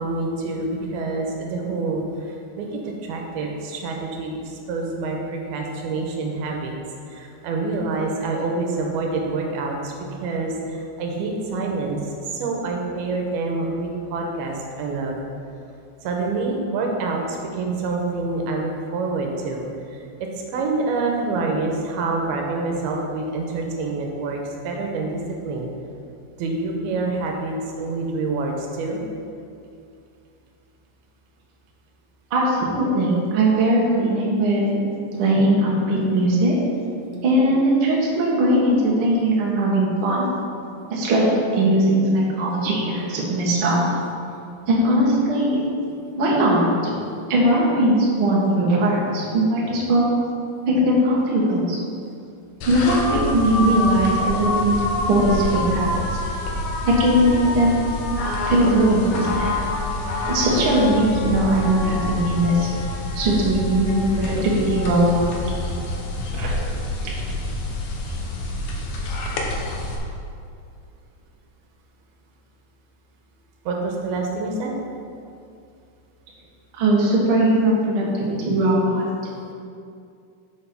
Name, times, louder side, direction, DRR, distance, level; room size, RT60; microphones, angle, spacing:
voice 1, 0.0-6.7 7.1-9.9 10.2-15.2 16.0-19.6 19.9-24.4 24.6-25.7 26.4-29.0 73.7-74.7, right 3 dB, 85° right, 0 dB, 2.9 m, -27 dB
voice 2, 32.3-34.8 35.1-36.6 37.2-40.3 40.9-41.3 41.6-43.9 44.7-45.6 46.2-46.9 47.3-50.1 50.7-51.8 52.7-56.0 56.9-57.8 58.4-59.5 60.2-62.7 63.1-65.3 66.3-66.5 76.8-79.0, right 1 dB, 45° right, -4 dB, 1.8 m, -19 dB
sound 1, 52.6-70.0, left 2 dB, 65° left, 1.9 m, -27 dB
7.6 x 6.2 x 5.8 m, 2.5 s
omnidirectional pair, 4.3 m